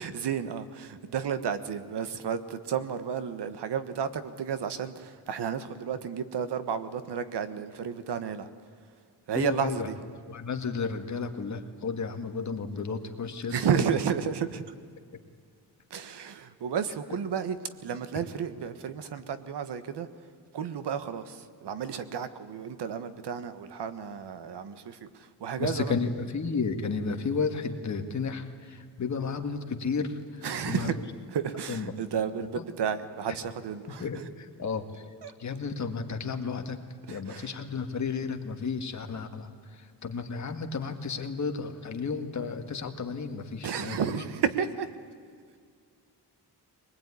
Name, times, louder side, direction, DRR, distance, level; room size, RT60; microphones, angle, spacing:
voice 1, 0.0-8.5 9.3-10.0 13.5-14.6 15.9-20.1 20.5-26.0 30.4-31.0 31.3-34.3 35.2-35.3 37.1-37.6 43.6-44.9, right 7 dB, 75° right, 11 dB, 1.5 m, -32 dB
voice 2, 9.4-9.9 10.3-13.8 25.6-30.9 31.7-31.9 32.5-32.6 33.3-33.4 34.0-35.1 35.4-36.8 37.1-44.0, left 5 dB, 45° left, 5 dB, 2.0 m, -33 dB
23.0 x 20.5 x 9.8 m, 2.1 s
wide cardioid pair, 155°, 41 cm